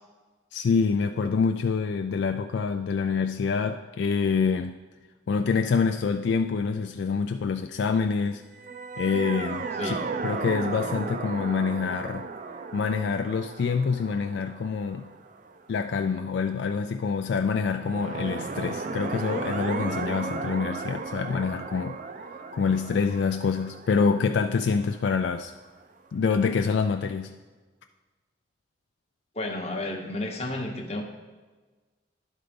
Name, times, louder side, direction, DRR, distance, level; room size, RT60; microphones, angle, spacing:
voice 1, 0.5-4.8 5.3-8.4 9.0-10.0 10.2-12.3 12.7-15.0 15.7-22.0 22.5-25.5 26.1-27.3, left 5 dB, 65° left, 7 dB, 0.3 m, -26 dB
sound 1, 8.5-15.8 17.7-25.5, right 4 dB, 40° right, 0.4 m, -35 dB
voice 2, 29.3-31.0, left 2 dB, 35° left, 3 dB, 0.9 m, -32 dB
11.0 x 3.9 x 5.1 m, 1.3 s
head